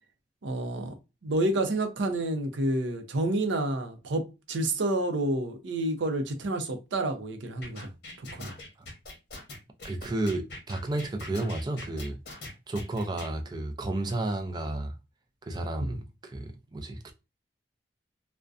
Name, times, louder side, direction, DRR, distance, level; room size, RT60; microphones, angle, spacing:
voice 1, 0.4-0.9 1.2-7.9 8.3-8.5 15.8-16.0, right 1 dB, 90° right, 0.5 m, -29 dB
sound 1, 7.6-13.3, left 2 dB, 60° left, 0.8 m, -43 dB
voice 2, 9.8-12.2 12.7-14.9 15.4-17.1, right 2 dB, 25° right, 0.3 m, -32 dB
2.5 x 2.1 x 2.3 m
head